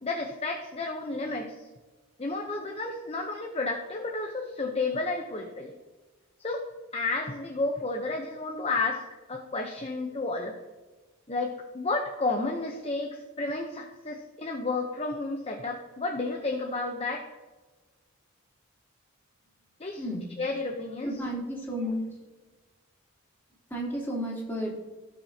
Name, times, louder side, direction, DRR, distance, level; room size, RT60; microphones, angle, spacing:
voice 1, 0.0-1.5 2.2-5.7 6.4-6.6 6.9-9.0 9.3-10.6 11.3-17.3 19.8-20.0 20.4-21.1, left 3 dB, 30° left, 2 dB, 0.8 m, -31 dB
voice 2, 20.0-20.4 21.0-22.3 23.7-24.7, equal, 10° left, -6 dB, 3.2 m, -32 dB
17.5 x 6.2 x 2.8 m, 1.3 s
head